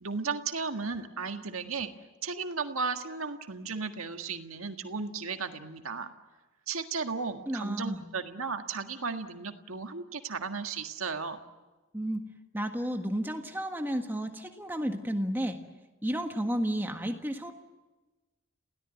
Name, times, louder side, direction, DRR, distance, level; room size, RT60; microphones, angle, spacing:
voice 1, 0.0-1.9 2.2-6.1 6.7-11.4, right 4 dB, 85° right, 6 dB, 1.7 m, -35 dB
voice 2, 7.5-8.0 11.9-12.2 12.5-15.6 16.0-17.5, equal, 10° right, 5 dB, 1.5 m, -32 dB
28.0 x 17.0 x 9.2 m, 1.2 s
head